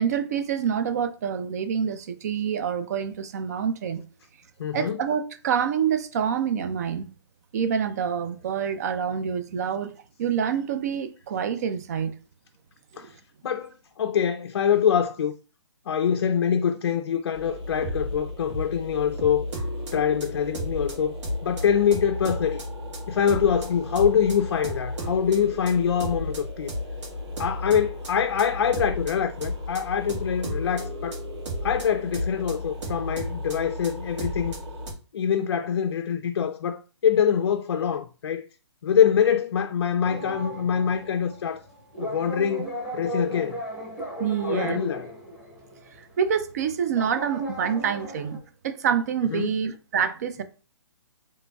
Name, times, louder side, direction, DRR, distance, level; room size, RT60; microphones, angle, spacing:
voice 1, 0.0-4.0 4.7-7.1 7.5-9.9 10.2-12.1 12.9-13.1 44.2-44.8 46.0-50.4, right 7 dB, 35° right, 0.4 m, -27 dB
voice 2, 4.6-5.0 13.0-13.2 13.4-15.3 15.9-19.4 19.9-21.1 21.4-22.6 23.1-26.7 27.4-31.2 31.6-34.6 35.1-38.5 38.8-41.6 42.0-43.6 44.4-45.1 49.3-49.5, left 8 dB, 55° left, 0.4 m, -24 dB
sound 1, 17.3-34.9, equal, 70° right, 1.7 m, -33 dB
sound 2, 40.0-46.0 46.4-46.5 46.9-48.4, right 1 dB, 5° right, 1.2 m, -36 dB
3.8 x 3.0 x 2.3 m
hypercardioid pair, 160°, 15 cm